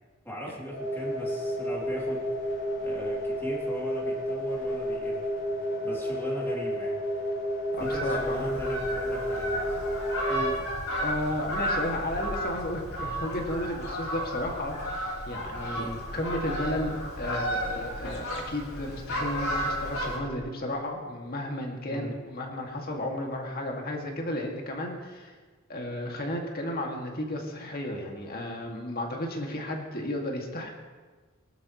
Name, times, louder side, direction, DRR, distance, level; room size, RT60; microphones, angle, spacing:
voice 1, 0.2-2.3 2.8-5.3 5.8-7.0 7.8-9.8 10.3-10.6 15.7-16.1 21.9-22.1, equal, 10° left, -4 dB, 3.0 m, -39 dB
sound 1, 0.7-10.5, equal, 70° left, 3.3 m, -31 dB
voice 2, 7.7-8.5 11.0-25.3 25.7-30.7, left 1 dB, 45° left, 0 dB, 2.3 m, -33 dB
Fowl, 7.8-20.2, equal, 90° left, 4.3 m, -33 dB
23.5 x 12.5 x 3.2 m, 1.4 s
head